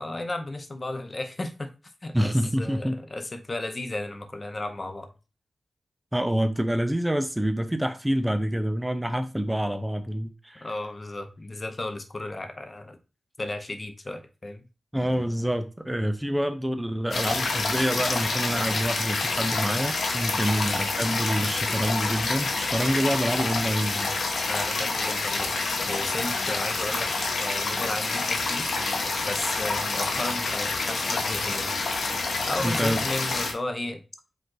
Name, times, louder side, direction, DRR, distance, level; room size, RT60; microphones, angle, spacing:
voice 1, 0.0-1.7 2.0-2.3 2.6-5.1 10.6-13.0 13.4-14.6 20.4-20.6 24.5-25.5 25.9-27.1 27.4-28.7 29.2-31.8 32.5-34.0, left 2 dB, 35° left, 0.7 m, -34 dB
voice 2, 2.1-3.0 6.1-10.7 14.9-24.1 32.6-33.0, equal, 10° right, 0.5 m, -27 dB
sound 1, 17.1-33.5, left 3 dB, 80° left, 1.0 m, -28 dB
5.2 x 2.5 x 3.8 m
cardioid pair, 70°, 0 cm